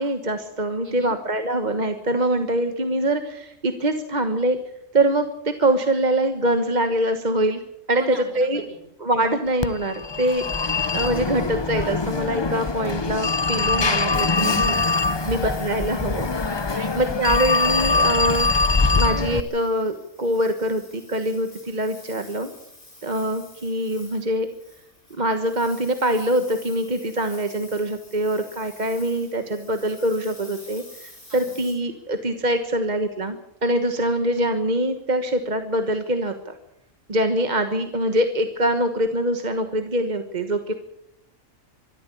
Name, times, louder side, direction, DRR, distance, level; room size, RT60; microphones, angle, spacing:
voice 1, 0.0-4.6 4.9-7.6 7.9-8.0 8.3-8.6 9.0-14.8 15.3-16.3 17.0-18.5 18.9-22.5 23.0-24.5 25.2-36.5 37.1-40.7, right 1 dB, 35° right, 7 dB, 1.4 m, -24 dB
voice 2, 0.8-1.2 7.9-8.9 15.1-15.6 16.4-17.5 31.3-31.6, right 3 dB, 55° right, 4 dB, 3.6 m, -41 dB
Telephone, 9.6-19.4, left 3 dB, 25° left, 0.7 m, -23 dB
Engine, 14.1-32.6, left 1 dB, 40° left, 6.0 m, -47 dB
24.5 x 13.5 x 8.4 m, 0.79 s
omnidirectional pair, 1.3 m